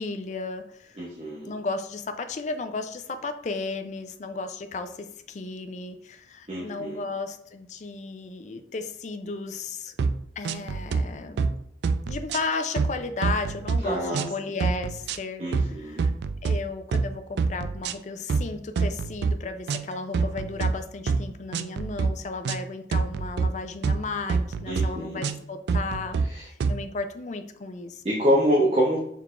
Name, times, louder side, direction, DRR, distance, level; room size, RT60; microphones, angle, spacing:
voice 1, 0.0-1.0 1.5-9.9 10.4-11.6 12.1-16.1 16.4-28.0, left 3 dB, 40° left, 8 dB, 0.4 m, -34 dB
voice 2, 1.0-1.5 6.5-7.0 13.8-14.2 15.4-16.0 24.7-25.2 26.3-26.4 28.0-29.0, equal, 35° right, -3 dB, 0.7 m, -25 dB
sound 1, 10.0-10.2 10.4-11.0 11.4-11.6 11.8-12.9 13.2-13.8 14.1-14.3 14.6-15.2 15.5-15.7 16.0-16.6 16.9-17.1 17.4-17.9 18.3-18.5 18.7-19.3 19.7-20.7 21.1-21.2 21.5-22.1 22.4-22.6 22.9-23.5 23.8-24.0 24.3-24.9 25.2-25.4 25.7-26.3 26.6-26.8, right 4 dB, 75° right, 0.3 m, -25 dB
4.7 x 3.5 x 2.4 m, 0.70 s
head